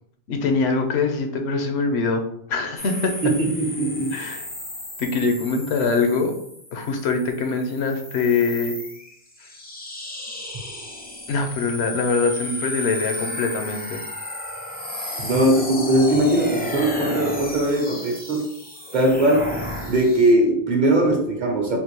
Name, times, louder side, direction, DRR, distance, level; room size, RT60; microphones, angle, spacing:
voice 1, 0.3-2.2 2.5-3.1 4.1-4.5 5.0-6.3 6.7-8.8 9.4-9.5 11.3-14.0, left 4 dB, 85° left, 5 dB, 0.9 m, -23 dB
sound 1, 2.8-20.3, left 1 dB, 15° left, 0.3 m, -33 dB
voice 2, 3.2-4.1 15.2-18.5 18.9-19.5 19.8-21.8, right 1 dB, 50° right, 1 dB, 0.8 m, -20 dB
3.5 x 2.5 x 3.0 m, 0.71 s
omnidirectional pair, 1.1 m